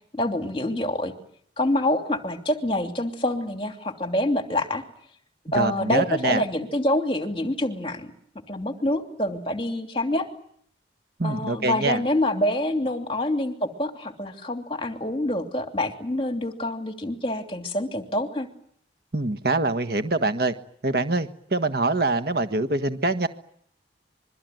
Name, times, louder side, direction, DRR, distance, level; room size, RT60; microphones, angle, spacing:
voice 1, 0.1-1.1 1.6-4.8 5.5-8.1 8.5-10.3 11.2-18.5, left 1 dB, 30° left, 5 dB, 3.0 m, -26 dB
voice 2, 5.5-6.4 11.2-12.0 19.1-20.5 20.8-23.3, right 2 dB, 55° right, 10 dB, 1.5 m, -24 dB
26.5 x 23.0 x 9.3 m, 0.66 s
head